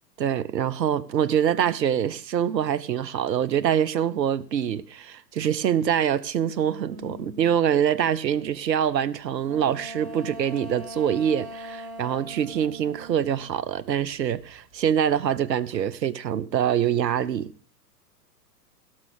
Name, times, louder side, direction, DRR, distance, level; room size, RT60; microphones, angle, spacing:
voice 1, 0.2-17.5, right 9 dB, 80° right, 0.9 m, -25 dB
sound 1, 6.9-7.5 9.4-14.1 14.4-15.2, equal, 50° right, 4.0 m, -41 dB
17.0 x 6.5 x 6.4 m
hypercardioid pair, 110°, 49 cm